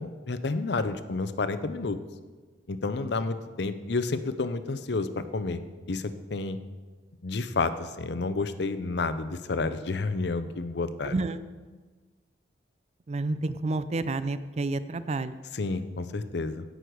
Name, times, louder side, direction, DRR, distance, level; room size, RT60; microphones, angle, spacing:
voice 1, 0.0-2.0 2.7-5.6 5.9-6.6 7.2-11.1 15.5-16.6, left 3 dB, 65° left, 12 dB, 0.6 m, -30 dB
voice 2, 13.1-15.4, right 2 dB, 35° right, 13 dB, 0.4 m, -29 dB
16.0 x 6.4 x 4.7 m, 1.4 s
head